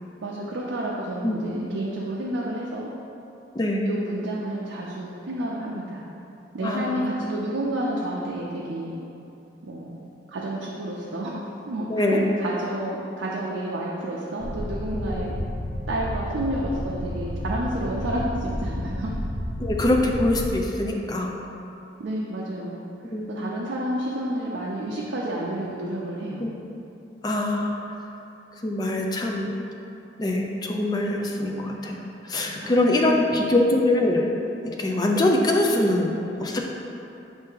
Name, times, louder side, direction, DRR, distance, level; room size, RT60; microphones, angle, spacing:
voice 1, 0.2-2.9 3.8-6.0 6.5-9.0 9.6-9.9 10.3-11.4 11.7-15.3 15.9-19.1 22.0-22.9 23.3-26.4 32.6-32.8 33.2-33.4, right 1 dB, 90° right, -4 dB, 0.5 m, -30 dB
voice 2, 6.6-7.0 11.9-12.3 15.0-15.1 19.6-21.3 23.1-23.4 26.4-26.5 27.2-27.7 28.6-29.5 30.2-34.3 34.7-36.1 36.4-36.6, left 1 dB, 20° left, 1 dB, 0.4 m, -23 dB
sound 1, 14.4-20.6, equal, 90° left, 0.6 m, -31 dB
5.3 x 2.6 x 3.8 m, 2.8 s
head